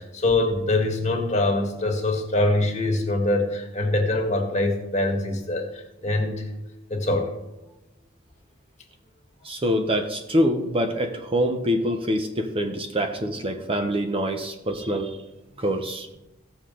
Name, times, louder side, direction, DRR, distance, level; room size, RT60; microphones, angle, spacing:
voice 1, 0.0-6.5 6.9-7.3, left 2 dB, 35° left, 1 dB, 1.8 m, -24 dB
voice 2, 9.4-15.2 15.6-16.1, equal, 30° right, 5 dB, 0.8 m, -25 dB
15.5 x 6.7 x 3.9 m, 0.97 s
head